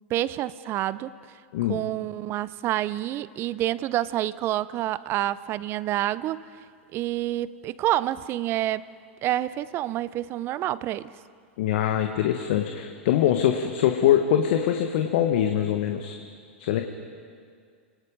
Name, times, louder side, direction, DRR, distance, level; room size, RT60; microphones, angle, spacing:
voice 1, 0.1-1.1 1.7-6.4 6.9-8.9 9.2-11.1, right 14 dB, 35° right, 18 dB, 0.6 m, -28 dB
voice 2, 11.6-16.2 16.6-16.8, left 10 dB, 60° left, 5 dB, 1.3 m, -23 dB
29.5 x 18.5 x 5.2 m, 2.1 s
hypercardioid pair, 105°, 7 cm